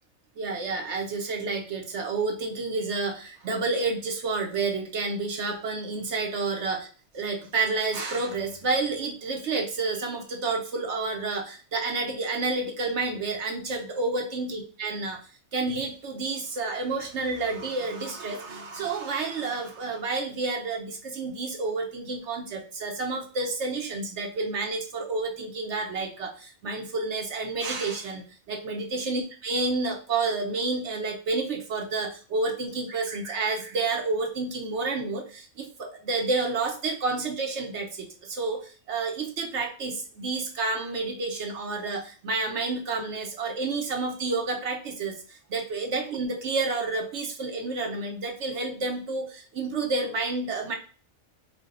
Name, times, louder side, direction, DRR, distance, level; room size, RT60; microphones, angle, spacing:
voice 1, 0.4-6.9 7.1-15.2 15.5-50.8, right 3 dB, 60° right, 3 dB, 1.0 m, -30 dB
4.7 x 2.2 x 3.8 m, 0.37 s
omnidirectional pair, 1.4 m